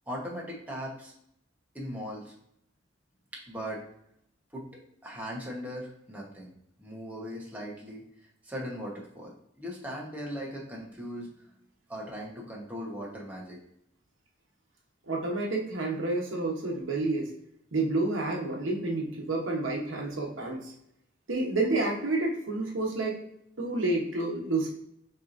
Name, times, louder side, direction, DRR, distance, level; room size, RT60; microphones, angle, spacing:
voice 1, 0.1-1.1 1.7-2.3 3.5-3.8 4.5-4.6 5.0-6.5 6.8-8.0 8.4-9.3 9.6-11.3 11.9-13.6, equal, 10° right, -4 dB, 1.0 m, -38 dB
voice 2, 15.1-17.3 17.7-20.7 21.3-23.2 23.6-24.7, right 2 dB, 90° right, 0 dB, 0.9 m, -29 dB
5.7 x 3.0 x 2.5 m, 0.74 s
head